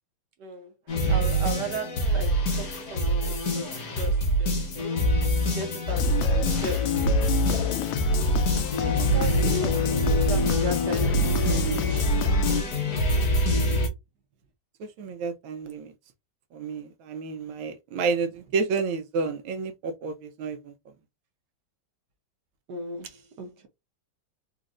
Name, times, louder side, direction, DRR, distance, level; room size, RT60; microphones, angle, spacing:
voice 1, 0.4-4.6 5.5-7.0 7.5-7.8 8.8-12.1 22.7-23.7, right 2 dB, 65° right, 1.3 m, -36 dB
sound 1, 0.9-13.9, right 1 dB, 55° left, 1.6 m, -25 dB
sound 2, 5.9-12.6, left 10 dB, 80° left, 1.4 m, -28 dB
voice 2, 14.8-15.9 16.5-20.7, right 4 dB, 80° right, 1.5 m, -30 dB
4.1 x 3.0 x 2.5 m
omnidirectional pair, 2.2 m